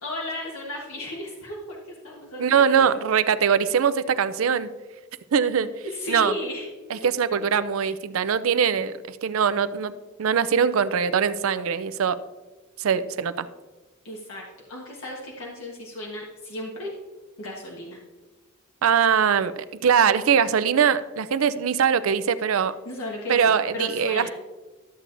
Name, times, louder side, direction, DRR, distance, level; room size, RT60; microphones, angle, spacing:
voice 1, 0.0-1.8 2.0-2.9 5.8-6.7 14.0-14.4 14.7-16.9 17.4-18.0 22.8-24.3, left 1 dB, 80° left, -2 dB, 1.3 m, -34 dB
voice 2, 2.4-4.7 5.3-5.7 6.1-6.3 6.9-12.2 12.8-13.5 18.8-22.7 23.3-24.3, right 7 dB, 80° right, 14 dB, 0.5 m, -22 dB
13.0 x 7.6 x 2.6 m, 1.2 s
head